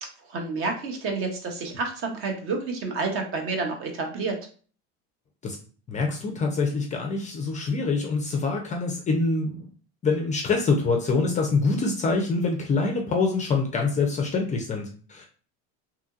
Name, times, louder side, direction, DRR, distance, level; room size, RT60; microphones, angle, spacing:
voice 1, 0.0-4.4, right 3 dB, 40° right, 3 dB, 0.8 m, -29 dB
voice 2, 5.9-9.7 10.0-15.2, left 4 dB, 25° left, 2 dB, 0.4 m, -25 dB
2.8 x 2.6 x 2.3 m, 0.40 s
supercardioid pair, 120°, 33 cm